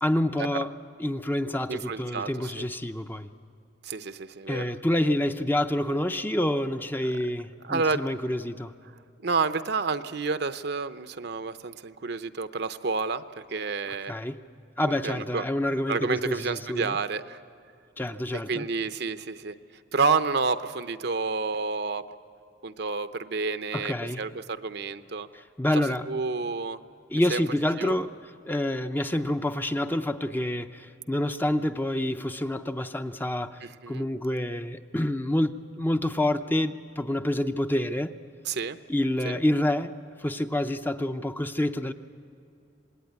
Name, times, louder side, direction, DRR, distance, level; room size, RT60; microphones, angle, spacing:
voice 1, 0.0-0.7 1.0-3.3 4.5-8.7 14.1-14.4 14.8-17.0 18.0-18.7 23.7-24.2 25.3-26.1 27.1-28.1 28.5-38.1 38.9-39.9 40.2-41.9, left 1 dB, 10° left, 8 dB, 0.6 m, -28 dB
voice 2, 1.7-2.7 3.8-4.6 7.6-8.0 9.2-14.1 14.9-15.4 15.9-17.4 18.5-19.5 19.9-22.0 22.6-25.3 26.1-26.8 27.3-27.4 27.8-28.0 33.6-34.1 38.5-38.8 39.2-39.4, right 4 dB, 60° right, 11 dB, 0.7 m, -29 dB
26.5 x 19.5 x 9.5 m, 2.5 s
head